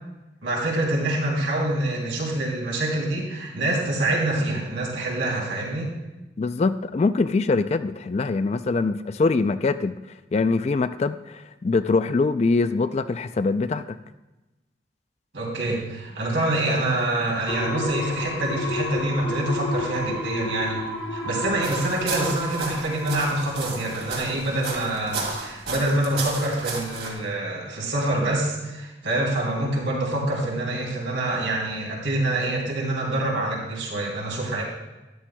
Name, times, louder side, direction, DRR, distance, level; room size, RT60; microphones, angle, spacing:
voice 1, 0.4-5.9 15.3-20.8 21.1-34.6, right 1 dB, 85° right, -2 dB, 3.0 m, -26 dB
voice 2, 6.4-10.0 10.3-14.0, left 3 dB, 35° left, 11 dB, 0.3 m, -23 dB
sound 1, 17.5-25.1 25.5-25.6, left 1 dB, 65° left, 1.2 m, -32 dB
sound 2, 21.6-27.1, right 4 dB, 65° right, 2.5 m, -33 dB
13.0 x 11.5 x 2.3 m, 1.1 s
head